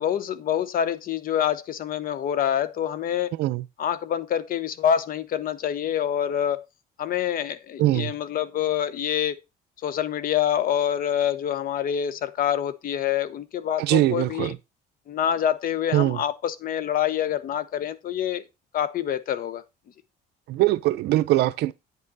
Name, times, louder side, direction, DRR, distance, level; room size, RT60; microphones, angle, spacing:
voice 1, 0.0-3.3 3.8-6.6 7.0-9.4 9.8-14.5 15.1-18.4 18.7-19.6, left 9 dB, 55° left, 1.0 m, -26 dB
voice 2, 3.3-3.7 7.8-8.1 13.8-14.6 15.9-16.2 20.5-21.7, right 16 dB, 80° right, 0.6 m, -22 dB
9.3 x 5.7 x 4.0 m
cardioid pair, 110°, 17 cm